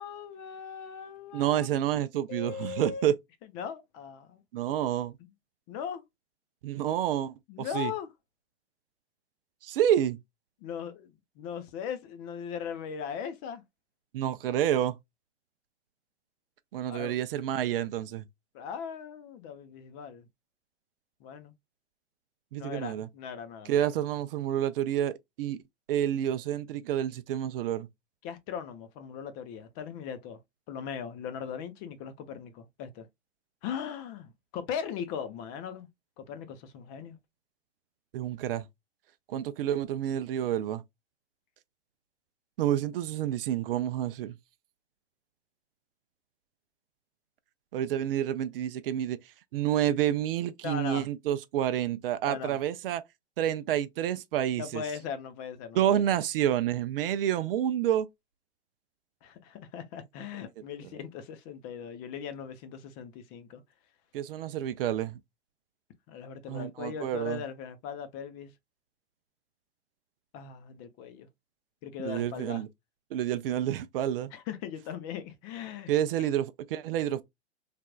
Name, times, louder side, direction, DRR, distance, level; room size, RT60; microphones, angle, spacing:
voice 1, 0.0-1.7 2.3-3.1 3.5-4.4 5.7-6.0 7.5-8.1 10.6-13.6 16.9-17.2 18.5-20.3 21.2-21.5 22.5-23.8 28.2-30.4 30.7-33.1 33.6-35.9 36.2-37.2 50.6-51.1 52.2-52.6 54.6-56.2 59.2-63.6 66.1-68.5 70.3-71.3 71.8-72.6 74.3-75.9 76.2-76.3, left 7 dB, 35° left, 0.6 m, -39 dB
voice 2, 1.3-3.2 4.5-5.2 6.6-7.9 9.6-10.2 14.1-15.0 16.7-18.2 22.5-23.1 23.7-25.6 25.9-27.9 38.1-38.7 39.3-40.8 42.6-44.4 47.7-53.0 53.4-54.8 55.7-58.1 64.1-65.2 66.5-67.4 72.0-72.7 73.1-74.3 75.9-77.2, right 11 dB, 55° right, 0.5 m, -29 dB
3.4 x 2.4 x 2.3 m
hypercardioid pair, 120°, 35 cm